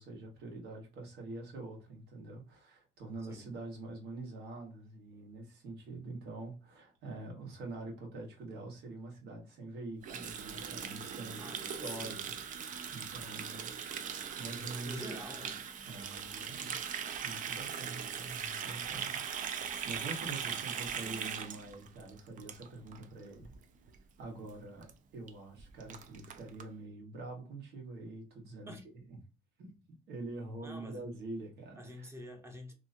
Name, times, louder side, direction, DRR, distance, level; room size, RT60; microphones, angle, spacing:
voice 1, 0.0-12.3 12.9-14.1 14.4-15.2 15.9-16.8 17.2-19.2 19.8-23.5 24.2-28.7 29.1-29.2 29.6-29.8 30.1-32.1, right 2 dB, 70° right, 1.4 m, -45 dB
voice 2, 3.2-3.5 11.4-12.3 14.8-15.6 17.8-18.2 18.8-19.1 28.7-28.8 30.6-31.0 31.8-32.7, left 1 dB, 15° right, 0.8 m, -48 dB
Water tap faucet, 10.0-23.0 23.3-23.6 23.9-24.2 24.5-24.6 24.8-24.9 25.3-25.4 25.6-26.6, right 7 dB, 50° right, 0.5 m, -40 dB
3.0 x 2.5 x 2.5 m
cardioid pair, 110°, 17 cm